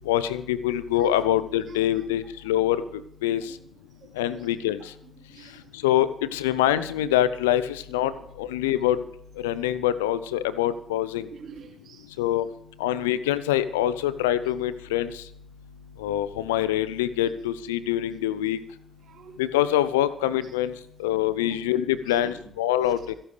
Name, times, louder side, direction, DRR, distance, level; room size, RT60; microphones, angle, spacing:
voice 1, 0.1-2.8 3.2-3.4 4.2-4.8 5.8-8.1 8.4-9.0 9.4-11.3 12.2-12.4 12.8-15.1 16.0-18.6 19.4-20.7 21.0-23.1, left 12 dB, 85° left, 16 dB, 0.6 m, -24 dB
voice 2, 5.3-5.6 11.3-12.1 19.0-19.4 21.4-21.6 22.1-22.4, right 6 dB, 60° right, 4 dB, 2.7 m, -46 dB
26.5 x 11.5 x 3.4 m, 0.67 s
hypercardioid pair, 45°, 0 cm